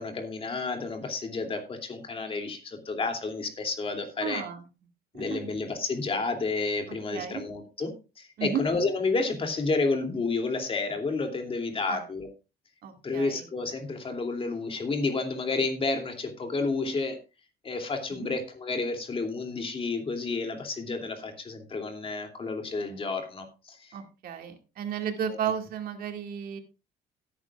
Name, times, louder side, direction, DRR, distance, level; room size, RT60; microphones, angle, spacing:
voice 1, 0.0-4.4 5.1-12.3 13.0-17.2 17.6-23.8 25.3-25.4, left 3 dB, 35° left, 4 dB, 2.7 m, -30 dB
voice 2, 4.2-4.7 5.1-5.4 7.1-7.4 8.4-8.6 11.9-12.0 12.8-13.5 18.1-18.3 23.9-26.6, right 8 dB, 60° right, 5 dB, 2.1 m, -33 dB
17.0 x 9.6 x 2.4 m, 0.29 s
cardioid pair, 110°, 17 cm